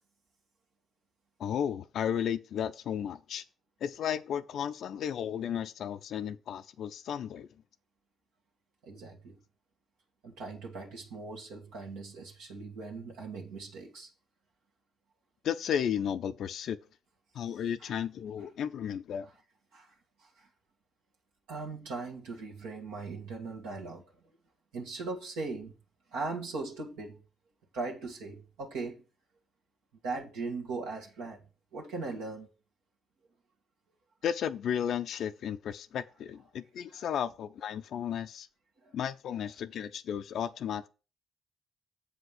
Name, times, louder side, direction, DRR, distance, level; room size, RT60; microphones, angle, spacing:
voice 1, 1.4-3.4 3.8-7.5 15.4-16.8 17.3-19.3 34.2-38.5 38.9-40.9, left 9 dB, 60° left, 0.5 m, -34 dB
voice 2, 8.8-9.4 10.2-14.1 17.8-17.9 19.2-19.3 19.7-20.5 21.5-24.1 24.7-25.7 26.1-27.2 27.7-29.0 30.0-31.4 31.7-32.5 38.8-38.9, right 3 dB, 75° right, 1.7 m, -39 dB
7.6 x 5.0 x 6.6 m
hypercardioid pair, 45°, 0 cm